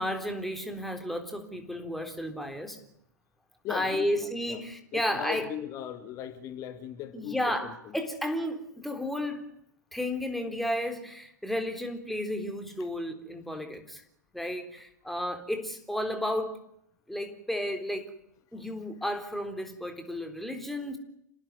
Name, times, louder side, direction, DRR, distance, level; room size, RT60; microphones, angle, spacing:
voice 1, 0.0-2.8 3.7-5.5 7.1-9.5 9.9-14.0 14.3-16.6 17.1-18.1 18.5-21.0, left 1 dB, ahead, 3.7 m, -33 dB
voice 2, 3.6-4.6 4.9-7.9, left 10 dB, 35° left, 2.1 m, -38 dB
27.5 x 19.0 x 9.7 m
figure-of-eight pair, 100°, 10 cm